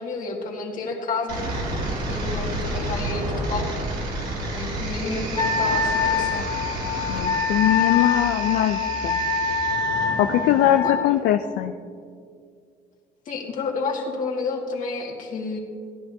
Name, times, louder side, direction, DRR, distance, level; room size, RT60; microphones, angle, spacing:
voice 1, 0.0-1.5 1.8-3.7 4.5-6.5 10.8-10.9 13.3-15.6, left 4 dB, 50° left, -2 dB, 2.0 m, -30 dB
sound 1, 1.3-7.3, right 1 dB, 60° right, 3.0 m, -32 dB
sound 2, 1.3-10.8, right 1 dB, 90° right, 2.7 m, -32 dB
Wind instrument woodwind instrument, 5.4-11.0, left 5 dB, 35° left, 1.7 m, -25 dB
voice 2, 7.1-9.2 10.2-11.7, left 12 dB, 75° left, 7 dB, 0.4 m, -21 dB
15.0 x 10.5 x 2.7 m, 2.2 s
cardioid pair, 110°, 17 cm